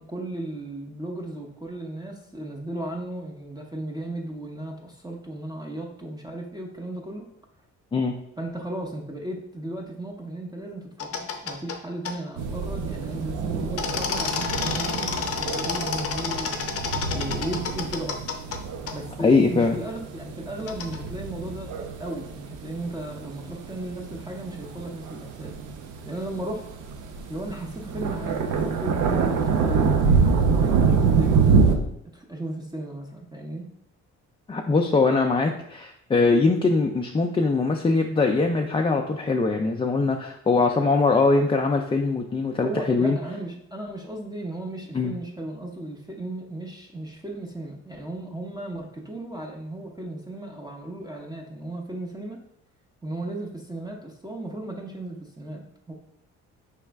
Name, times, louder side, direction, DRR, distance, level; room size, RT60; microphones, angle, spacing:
voice 1, 0.0-7.3 8.4-16.5 17.1-18.2 18.9-25.5 26.0-26.6 27.3-33.7 42.6-52.4 53.0-55.9, right 1 dB, 15° right, 0 dB, 0.7 m, -35 dB
sound 1, 11.0-11.8 12.0-12.1 13.8-18.6 18.9-19.0 20.7-21.0, left 6 dB, 50° left, 0.7 m, -29 dB
sound 2, 12.4-31.8, right 5 dB, 80° right, 0.6 m, -26 dB
voice 2, 19.2-19.7 34.5-43.2 44.9-45.1, left 3 dB, 20° left, 2 dB, 0.4 m, -22 dB
4.8 x 3.1 x 3.4 m, 0.72 s
cardioid pair, 90°, 30 cm